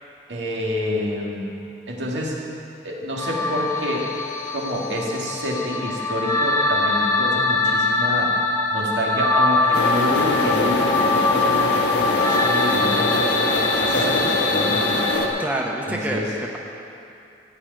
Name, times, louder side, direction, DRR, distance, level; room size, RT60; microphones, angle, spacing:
voice 1, 0.3-1.5 1.9-2.4 2.8-4.1 4.5-8.4 8.7-15.0 15.9-16.3, equal, 85° right, -2 dB, 1.9 m, -28 dB
sound 1, 3.2-15.2, left 3 dB, 15° left, 1.3 m, -23 dB
sound 2, 9.7-15.3, left 1 dB, 85° left, 1.4 m, -23 dB
voice 2, 15.4-16.6, right 1 dB, 10° right, -1 dB, 1.0 m, -27 dB
14.5 x 4.9 x 9.1 m, 2.6 s
head